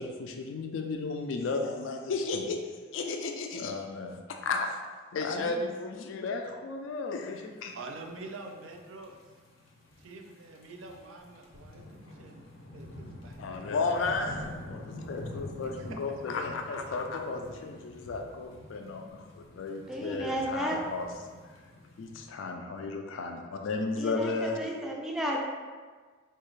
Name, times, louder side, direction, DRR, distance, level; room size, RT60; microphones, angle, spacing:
voice 1, 0.0-2.6 2.9-4.8 5.1-7.8 13.4-21.1 22.0-24.6, left 3 dB, 65° left, 3 dB, 0.3 m, -34 dB
voice 2, 7.7-9.2 10.0-12.5 12.7-13.7 15.8-16.4, right 3 dB, 75° right, 3 dB, 0.5 m, -46 dB
sound 1, 7.9-22.2, left 1 dB, 85° left, 0.7 m, -47 dB
voice 3, 19.9-20.8 24.0-25.4, equal, ahead, -2 dB, 0.4 m, -33 dB
4.4 x 2.4 x 3.1 m, 1.5 s
head